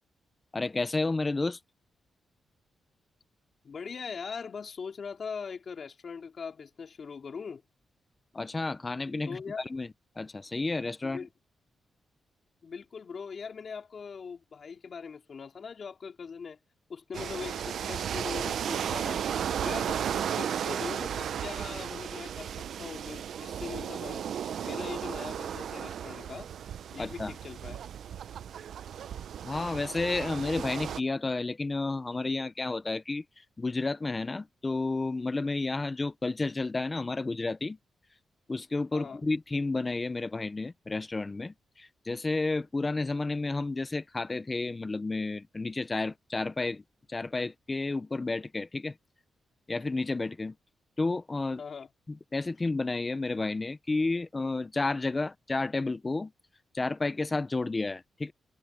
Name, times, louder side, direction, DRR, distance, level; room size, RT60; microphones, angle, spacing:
voice 1, 0.5-1.6 8.3-9.9 10.2-11.3 27.0-27.3 29.4-37.8 38.5-46.8 47.1-49.0 49.7-50.5 51.0-51.6 52.3-56.3 56.7-58.3, left 3 dB, 25° left, 0.7 m, -31 dB
voice 2, 3.6-7.6 9.3-9.7 11.0-11.3 12.6-16.6 16.9-19.2 19.6-24.2 24.6-26.5 26.9-27.8 38.9-39.2 51.6-51.9, left 5 dB, 45° left, 4.0 m, -41 dB
sound 1, 17.1-31.0, right 9 dB, 75° right, 0.5 m, -34 dB
cardioid pair, 115°, 0 cm